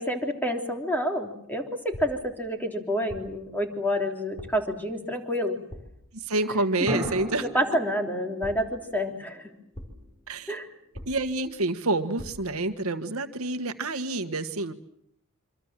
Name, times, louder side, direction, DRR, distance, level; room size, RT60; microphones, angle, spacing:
voice 1, 0.0-5.6 7.4-9.5 10.5-10.7, equal, 10° left, 3 dB, 3.3 m, -28 dB
sound 1, 1.9-2.4 3.1-3.5 4.4-4.8 5.7-6.1 7.0-7.5 8.4-9.0 9.7-10.2 10.9-11.5 12.2-12.6, equal, 30° left, 4.4 m, -43 dB
voice 2, 6.2-7.5 10.3-10.5 11.0-14.7, right 2 dB, 85° right, 8 dB, 1.6 m, -28 dB
sound 2, 6.9-11.2, equal, 10° right, 5.5 m, -39 dB
26.5 x 25.0 x 7.5 m, 0.73 s
head